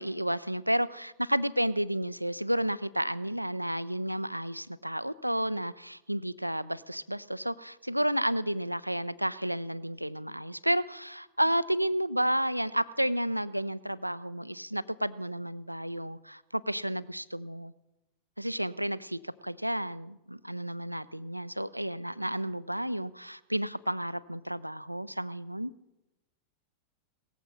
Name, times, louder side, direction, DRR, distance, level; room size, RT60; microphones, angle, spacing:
voice 1, 0.0-17.7 18.4-25.7, right 1 dB, 90° right, 18 dB, 0.4 m, -31 dB
18.5 x 14.5 x 4.1 m, 0.96 s
figure-of-eight pair, 90°, 0 cm